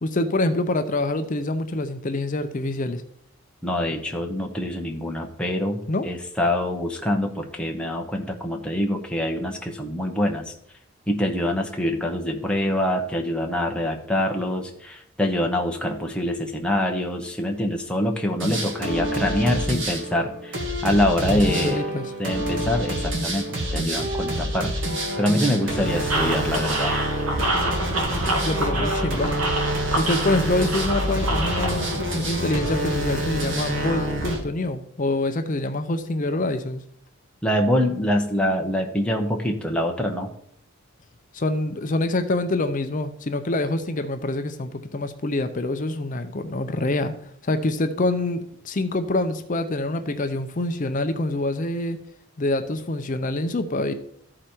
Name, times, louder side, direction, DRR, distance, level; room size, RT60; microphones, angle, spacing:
voice 1, 0.0-3.0 5.9-6.1 21.2-22.1 28.4-29.3 30.0-36.8 41.3-47.2 47.4-52.0 52.4-53.9, left 2 dB, 35° left, 9 dB, 0.5 m, -26 dB
voice 2, 3.6-10.5 11.1-21.9 22.2-24.7 25.2-27.0 37.4-40.3, left 1 dB, 5° left, 1 dB, 0.8 m, -25 dB
sound 1, 18.4-34.4, right 1 dB, 55° right, 1.8 m, -27 dB
sound 2, 26.1-32.0, right 2 dB, 75° right, 1.8 m, -28 dB
13.5 x 5.0 x 4.4 m, 0.68 s
head